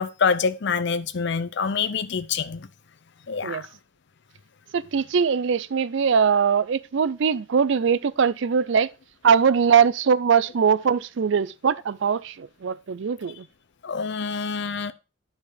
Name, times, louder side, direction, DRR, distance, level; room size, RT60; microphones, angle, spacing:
voice 1, 0.0-2.7 3.3-3.6 13.8-14.9, left 5 dB, 60° left, 0.6 m, -26 dB
voice 2, 4.7-8.9 9.2-13.4, right 6 dB, 65° right, 0.4 m, -21 dB
9.8 x 4.4 x 4.8 m
head